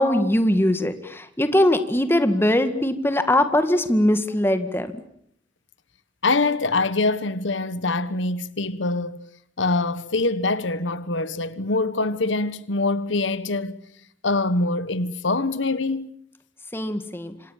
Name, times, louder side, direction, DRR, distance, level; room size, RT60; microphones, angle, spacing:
voice 1, 0.0-4.9 16.7-17.3, left 1 dB, 10° left, 1.9 m, -21 dB
voice 2, 6.2-9.2 9.6-13.8 14.2-16.1, left 3 dB, 80° left, 1.3 m, -24 dB
27.5 x 26.5 x 7.4 m
head